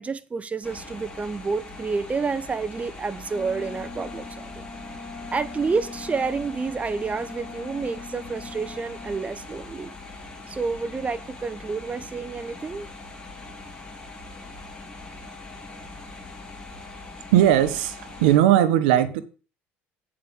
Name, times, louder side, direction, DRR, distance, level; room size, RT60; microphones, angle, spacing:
voice 1, 0.0-4.6 5.3-9.9 10.5-12.9, right 4 dB, 25° right, 0.9 m, -29 dB
sound 1, 0.6-18.4, left 3 dB, 15° left, 2.9 m, -42 dB
Wind instrument woodwind instrument, 3.3-9.3, left 4 dB, 45° left, 1.4 m, -41 dB
voice 2, 17.3-19.2, right 11 dB, 85° right, 1.0 m, -18 dB
8.7 x 5.0 x 7.1 m
supercardioid pair, 80°, 5 cm